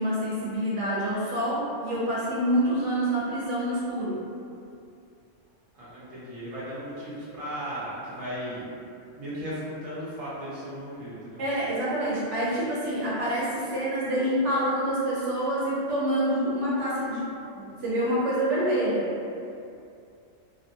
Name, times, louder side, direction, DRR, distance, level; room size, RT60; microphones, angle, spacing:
voice 1, 0.0-4.2 11.4-17.3 17.5-19.1, right 1 dB, 75° right, -7 dB, 0.9 m, -27 dB
voice 2, 5.7-8.7 9.1-11.4, equal, 35° right, -10 dB, 0.8 m, -36 dB
2.8 x 2.1 x 2.6 m, 2.6 s
omnidirectional pair, 1.3 m